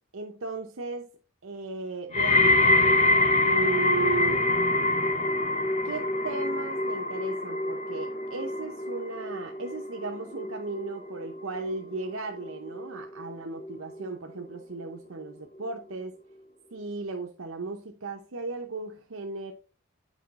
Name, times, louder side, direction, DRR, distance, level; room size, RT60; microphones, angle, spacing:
voice 1, 0.1-1.1 1.4-2.6 3.4-4.4 5.8-16.1 16.7-19.5, right 3 dB, 70° right, 0.8 m, -35 dB
sound 1, 2.1-13.3 13.6-14.1 14.8-14.9, left 2 dB, 30° left, 0.5 m, -26 dB
8.2 x 4.7 x 4.1 m
head